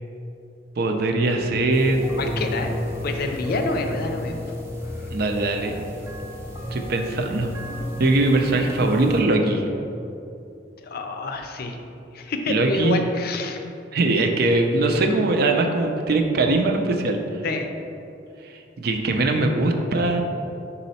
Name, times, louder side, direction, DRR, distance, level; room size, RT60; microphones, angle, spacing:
voice 1, 0.8-2.1 5.1-5.7 6.7-7.5 8.0-9.7 12.5-13.0 13.9-17.4 18.4-20.2, right 2 dB, 60° right, 4 dB, 0.5 m, -21 dB
sound 1, 1.7-9.2, left 1 dB, 15° right, 0.7 m, -32 dB
voice 2, 2.2-2.7 3.0-4.4 4.8-5.1 10.8-11.8 12.1-13.6 17.4-17.7, left 3 dB, 55° left, 5 dB, 0.5 m, -28 dB
5.5 x 4.1 x 4.1 m, 2.7 s
head